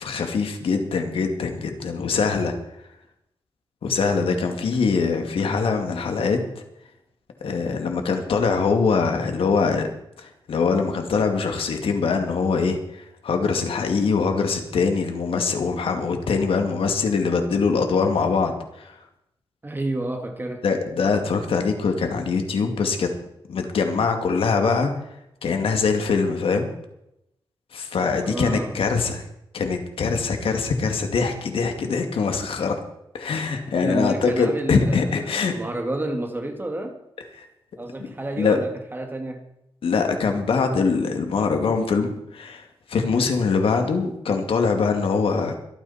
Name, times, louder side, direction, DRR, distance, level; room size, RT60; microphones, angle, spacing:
voice 1, 0.0-2.5 3.8-6.4 7.4-9.9 10.2-18.9 20.6-23.1 23.5-24.9 25.4-26.7 27.7-29.2 29.5-32.8 33.1-35.5 37.4-37.5 38.4-38.6 39.8-42.6 42.9-45.6, left 5 dB, 80° left, 5 dB, 2.3 m, -23 dB
voice 2, 19.6-20.7 28.1-28.9 33.8-37.0 37.8-39.4, right 1 dB, 20° right, 4 dB, 2.1 m, -30 dB
24.0 x 9.3 x 4.3 m, 0.83 s
wide cardioid pair, 95°, 9 cm